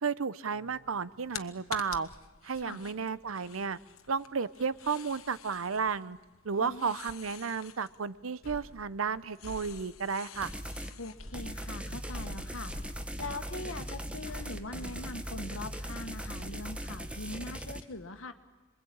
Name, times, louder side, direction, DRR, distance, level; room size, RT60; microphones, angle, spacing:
voice 1, 0.0-2.1 2.4-3.8 4.1-6.2 6.4-10.5, right 5 dB, 80° right, 16 dB, 0.8 m, -33 dB
sound 1, 0.5-11.5, left 9 dB, 90° left, 1.2 m, -49 dB
voice 2, 6.6-6.9 11.0-18.3, left 2 dB, 75° left, 7 dB, 1.7 m, -42 dB
sound 2, 8.4-17.6, left 1 dB, 45° left, 3.2 m, -48 dB
sound 3, 10.4-10.9 11.3-17.8, right 1 dB, 5° right, 1.2 m, -39 dB
27.0 x 22.0 x 8.7 m, 1.2 s
head